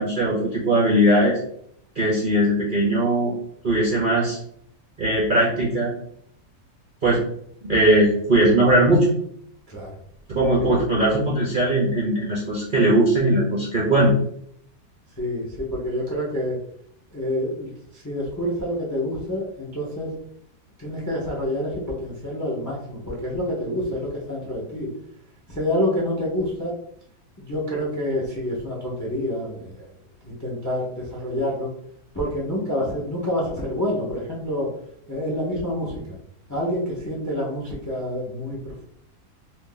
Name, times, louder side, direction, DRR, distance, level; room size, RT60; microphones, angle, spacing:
voice 1, 0.0-1.4 2.0-3.3 3.6-4.4 5.0-5.9 7.0-7.2 7.6-9.1 10.3-14.1, right 1 dB, 50° right, -5 dB, 0.6 m, -19 dB
voice 2, 9.7-10.0 10.6-10.8 15.2-16.6 17.1-20.1 20.8-24.9 25.5-26.7 27.4-29.9 30.2-31.7 32.1-34.7 35.1-36.2 36.5-38.8, left 1 dB, 20° left, -4 dB, 0.4 m, -27 dB
2.7 x 2.6 x 3.7 m, 0.67 s
omnidirectional pair, 1.7 m